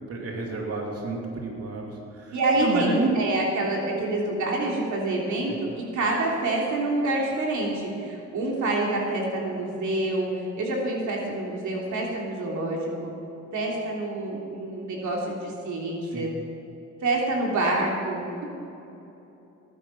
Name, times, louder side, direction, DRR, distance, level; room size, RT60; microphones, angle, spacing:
voice 1, 0.1-3.1 5.5-5.6 16.0-16.3, right 3 dB, 50° right, -1 dB, 3.0 m, -31 dB
voice 2, 2.3-10.3 10.6-13.1 13.5-16.3 17.0-18.4, right 2 dB, 70° right, -2 dB, 3.1 m, -27 dB
19.0 x 10.0 x 5.8 m, 2.9 s
cardioid pair, 90°, 30 cm